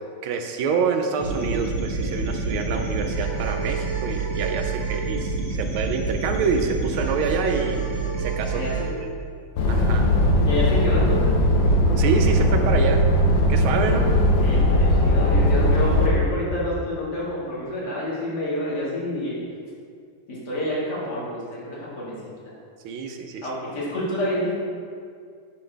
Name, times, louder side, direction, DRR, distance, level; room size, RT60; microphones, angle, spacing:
voice 1, 0.2-8.6 9.0-9.1 9.7-10.0 12.0-13.0 13.5-14.1 22.8-23.4, right 5 dB, 75° right, 5 dB, 1.4 m, -27 dB
sound 1, 1.2-8.9, right 4 dB, 35° right, 1.6 m, -27 dB
voice 2, 8.5-8.9 10.4-11.3 13.8-14.1 14.4-19.4 20.3-22.2 22.4-22.5 23.4-24.5, left 1 dB, 50° left, -8 dB, 2.4 m, -28 dB
sound 2, 9.6-16.1, equal, 70° left, 1.4 m, -19 dB
10.5 x 4.3 x 3.3 m, 2.2 s
omnidirectional pair, 2.4 m